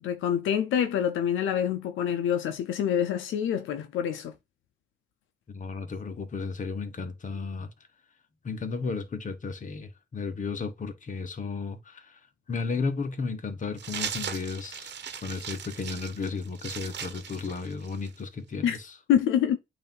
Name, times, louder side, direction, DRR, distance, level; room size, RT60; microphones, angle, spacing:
voice 1, 0.0-4.3 18.6-18.8 19.1-19.6, left 9 dB, 80° left, 0.8 m, -26 dB
voice 2, 5.5-7.7 8.4-12.2 12.5-18.9, left 4 dB, 40° left, 1.5 m, -34 dB
sound 1, 13.8-18.2, right 8 dB, 60° right, 1.2 m, -38 dB
8.6 x 2.9 x 5.5 m
cardioid pair, 90°, 20 cm